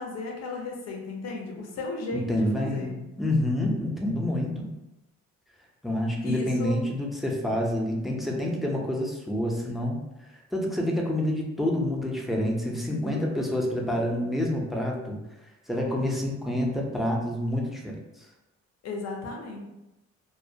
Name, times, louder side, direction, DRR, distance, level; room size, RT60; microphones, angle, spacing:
voice 1, 0.0-2.9 6.2-6.8 13.0-13.8 18.8-19.7, left 2 dB, 60° left, 0 dB, 0.6 m, -35 dB
voice 2, 2.1-4.7 5.8-10.0 10.5-15.2 15.7-18.3, left 1 dB, ahead, -1 dB, 0.4 m, -28 dB
2.2 x 2.1 x 2.6 m, 0.95 s
cardioid pair, 90°, 30 cm